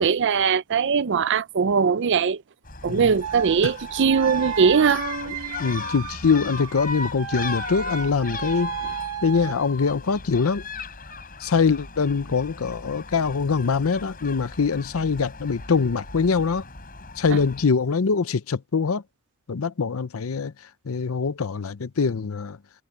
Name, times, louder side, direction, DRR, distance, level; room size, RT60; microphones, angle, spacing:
voice 1, 0.0-2.4 2.8-5.0, right 6 dB, 55° right, 0.5 m, -20 dB
Gull seagull, 2.6-17.7, left 5 dB, 40° left, 6.3 m, -38 dB
sound 1, 3.2-9.7, right 7 dB, 85° right, 2.2 m, -33 dB
voice 2, 5.6-8.7 9.2-10.7 11.4-16.6 17.2-19.0 19.5-20.5 20.9-22.6, left 5 dB, 70° left, 0.6 m, -23 dB
head